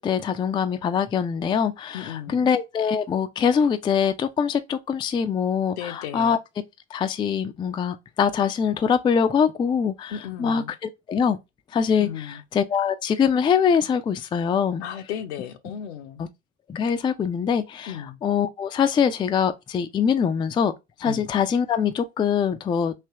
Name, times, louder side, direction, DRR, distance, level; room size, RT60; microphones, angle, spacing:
voice 1, 0.0-6.4 6.9-10.1 10.4-10.6 11.1-11.4 11.7-14.8 16.2-16.3 16.7-17.9 18.2-20.7 21.0-22.9, left 7 dB, 15° left, 0.3 m, -23 dB
voice 2, 1.9-2.5 5.7-6.4 10.1-10.7 12.0-12.4 14.8-16.2 17.9-18.2 21.1-21.2, left 9 dB, 70° left, 0.6 m, -35 dB
3.2 x 2.9 x 2.8 m
figure-of-eight pair, 60°, 34 cm